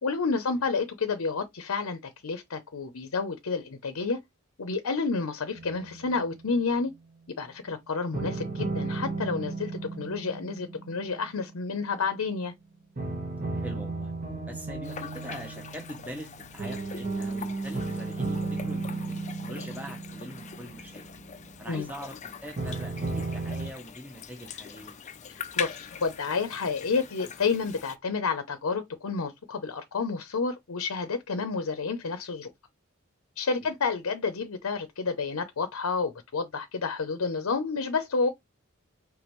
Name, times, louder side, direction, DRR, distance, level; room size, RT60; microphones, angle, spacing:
voice 1, 0.0-4.2 4.6-6.9 7.4-12.5 21.7-21.9 25.6-32.5 33.4-38.3, left 4 dB, 90° left, 0.7 m, -30 dB
sound 1, 5.5-6.7 8.1-12.1 13.0-21.8 22.6-23.7, right 3 dB, 40° right, 1.5 m, -35 dB
voice 2, 13.5-14.1 14.5-21.2 21.6-25.0 33.6-33.7, equal, 10° right, 1.0 m, -43 dB
sound 2, 14.8-28.0, left 7 dB, 35° left, 0.5 m, -42 dB
5.1 x 3.3 x 3.1 m
head